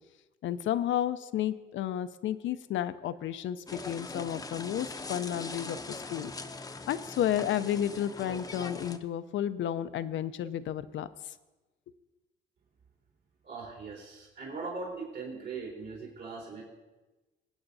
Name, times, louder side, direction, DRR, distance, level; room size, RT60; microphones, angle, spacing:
voice 1, 0.4-6.3 6.9-11.1, left 10 dB, 75° left, 12 dB, 0.6 m, -32 dB
sound 1, 3.7-9.0, left 3 dB, 20° left, 0.7 m, -41 dB
voice 2, 13.4-16.6, right 4 dB, 65° right, -4 dB, 3.8 m, -40 dB
24.0 x 8.7 x 2.7 m, 1.1 s
cardioid pair, 90°, 20 cm